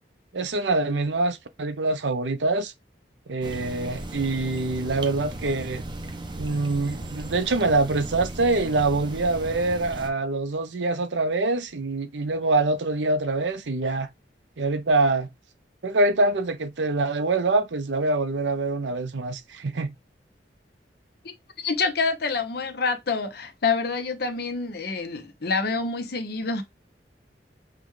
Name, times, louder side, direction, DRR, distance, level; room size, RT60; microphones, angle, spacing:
voice 1, 0.3-2.7 3.3-5.8 6.4-14.1 14.6-15.3 15.8-19.9, right 2 dB, 90° right, 0.7 m, -25 dB
sound 1, 3.4-10.1, right 1 dB, 25° right, 0.6 m, -36 dB
voice 2, 21.2-26.6, left 4 dB, 60° left, 0.8 m, -27 dB
6.0 x 2.3 x 3.1 m
head